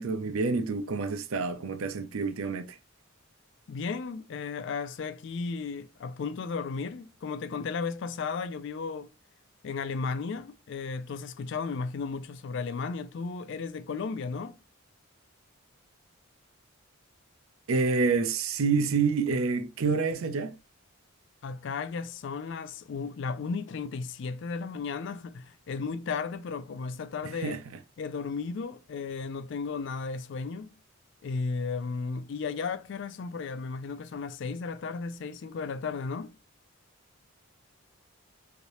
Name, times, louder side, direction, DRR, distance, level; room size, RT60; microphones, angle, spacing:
voice 1, 0.0-2.8 17.7-20.6 27.2-27.6, right 4 dB, 70° right, 0.5 m, -28 dB
voice 2, 3.7-9.1 9.6-14.6 21.4-27.6 28.0-30.8 31.2-36.4, left 4 dB, 55° left, 0.3 m, -34 dB
3.2 x 2.8 x 2.6 m
head